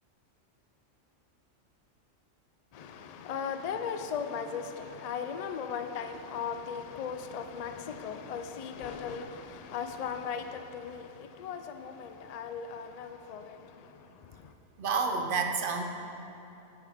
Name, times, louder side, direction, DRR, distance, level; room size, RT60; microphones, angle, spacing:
voice 1, 2.7-14.5, left 6 dB, 80° left, 7 dB, 0.3 m, -38 dB
voice 2, 14.8-15.8, right 4 dB, 50° right, 5 dB, 0.8 m, -29 dB
10.5 x 6.5 x 4.9 m, 3.0 s
omnidirectional pair, 1.3 m